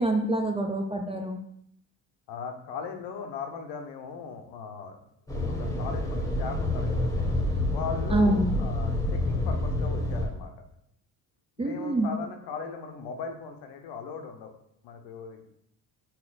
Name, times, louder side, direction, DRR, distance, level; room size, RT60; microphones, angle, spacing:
voice 1, 0.0-1.4 8.1-8.6 11.6-12.1, right 2 dB, 15° right, 4 dB, 0.3 m, -26 dB
voice 2, 2.3-5.0 5.3-7.3 7.7-10.7 11.6-14.5 14.8-15.4, left 5 dB, 70° left, 4 dB, 0.7 m, -38 dB
sound 1, 5.3-10.3, left 1 dB, 10° left, 1.0 m, -28 dB
4.2 x 2.0 x 3.9 m, 0.72 s
supercardioid pair, 65°, 42 cm